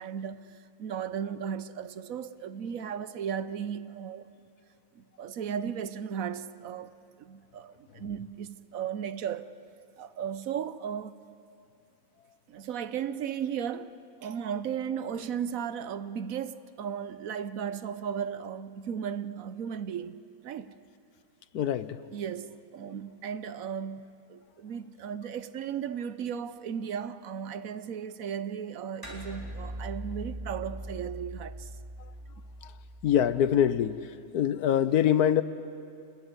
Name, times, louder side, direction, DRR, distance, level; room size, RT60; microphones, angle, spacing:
voice 1, 0.0-4.3 5.0-6.9 7.2-9.5 10.0-11.2 12.5-20.2 20.4-20.7 22.1-31.7, right 8 dB, 65° right, 1.2 m, -35 dB
voice 2, 21.5-22.0 32.6-32.7 33.0-34.0 34.3-35.4, left 10 dB, 85° left, 1.4 m, -24 dB
sound 1, 29.0-33.8, right 1 dB, 15° right, 3.9 m, -41 dB
27.0 x 20.5 x 9.5 m
omnidirectional pair, 1.6 m